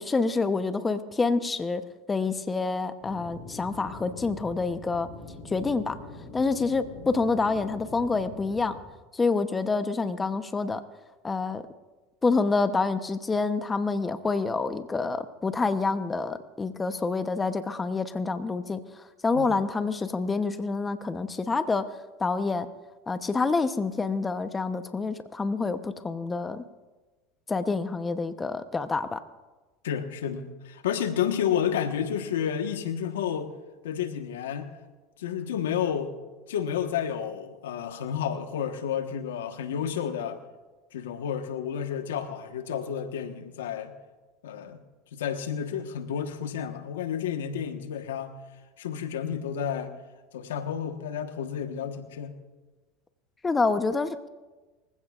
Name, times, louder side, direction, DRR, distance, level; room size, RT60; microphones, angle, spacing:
voice 1, 0.0-1.8 2.1-5.1 5.4-6.0 6.3-8.8 9.1-10.8 11.2-11.6 12.2-21.9 22.2-22.7 23.1-26.6 27.5-29.2 53.4-54.3, left 4 dB, 20° left, 10 dB, 0.9 m, -27 dB
sound 1, 3.0-8.8, left 3 dB, 70° left, 6.4 m, -44 dB
voice 2, 29.8-33.5 33.8-34.7 35.2-36.1 36.5-40.4 40.9-43.9 44.4-44.8 45.1-48.4 48.8-49.9 50.3-52.3, left 8 dB, 90° left, 7 dB, 1.3 m, -31 dB
24.5 x 15.5 x 2.5 m, 1.2 s
hypercardioid pair, 95°, 0 cm